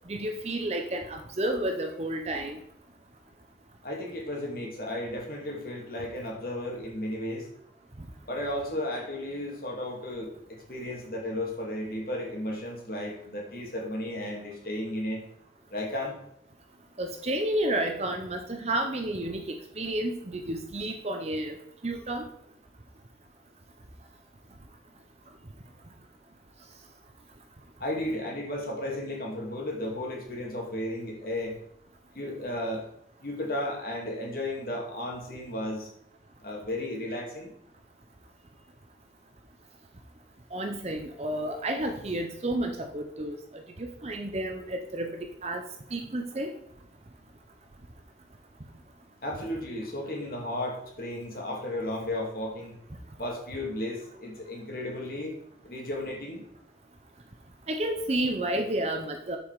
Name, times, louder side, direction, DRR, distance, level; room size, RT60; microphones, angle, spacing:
voice 1, 0.1-2.6 17.0-21.6 21.8-22.2 40.5-43.4 43.8-45.1 45.4-45.6 45.9-46.5 57.7-59.4, right 1 dB, 35° right, 4 dB, 0.8 m, -31 dB
voice 2, 3.8-7.5 8.2-15.2 15.7-16.2 27.8-31.6 32.1-32.9 33.2-35.9 36.4-37.5 49.2-52.8 53.2-55.4 55.6-56.4, left 1 dB, 50° left, 0 dB, 2.3 m, -34 dB
7.2 x 7.1 x 4.8 m, 0.73 s
head